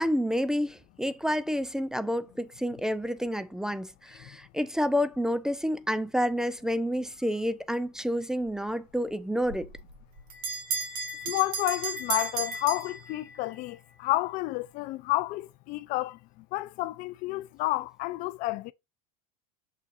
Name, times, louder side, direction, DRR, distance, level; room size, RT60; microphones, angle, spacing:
voice 1, 0.0-9.7, equal, 5° right, 0.5 m, -29 dB
Bell, 9.5-13.6, right 4 dB, 50° right, 2.0 m, -34 dB
voice 2, 11.3-16.2 16.5-18.7, left 18 dB, 50° left, 0.4 m, -30 dB
6.7 x 5.9 x 2.5 m
hypercardioid pair, 85°, 18 cm